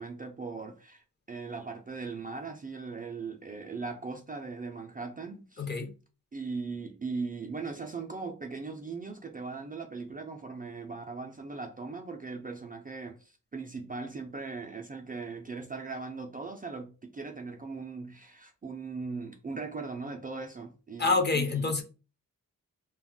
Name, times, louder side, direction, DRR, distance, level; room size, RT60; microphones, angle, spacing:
voice 1, 0.0-5.7 6.3-21.7, right 4 dB, 25° right, 0.3 m, -39 dB
voice 2, 5.6-5.9 21.0-21.8, left 3 dB, 30° left, 0.6 m, -27 dB
2.3 x 2.1 x 3.5 m
wide cardioid pair, 85°, 34 cm